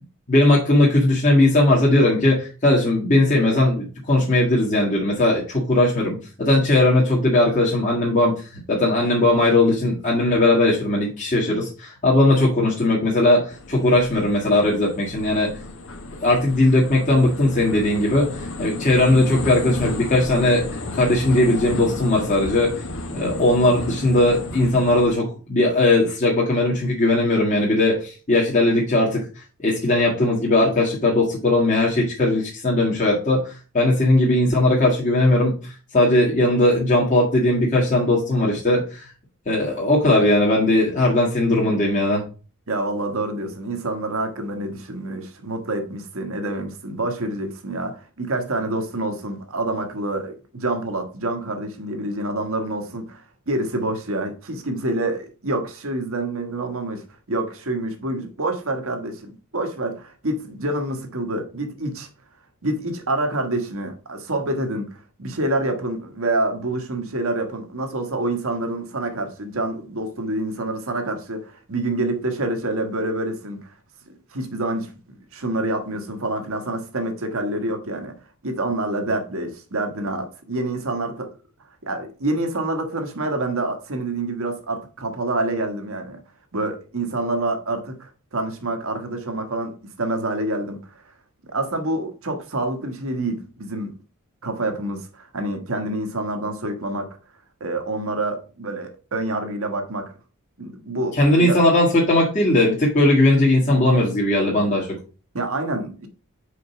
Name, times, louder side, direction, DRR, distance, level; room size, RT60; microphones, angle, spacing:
voice 1, 0.3-15.5 16.2-22.7 23.1-29.2 29.6-39.1 39.4-42.2 101.2-104.9, left 1 dB, 35° left, 1.8 m, -18 dB
sound 1, 13.5-25.1, left 2 dB, 60° left, 1.1 m, -33 dB
voice 2, 42.7-62.1 62.6-73.7 74.3-78.2 78.4-81.3 81.8-86.2 86.5-90.8 91.5-94.0 94.4-97.1 97.6-100.1 100.6-101.6 105.3-106.1, right 2 dB, 65° right, 1.5 m, -27 dB
5.1 x 4.6 x 5.8 m
head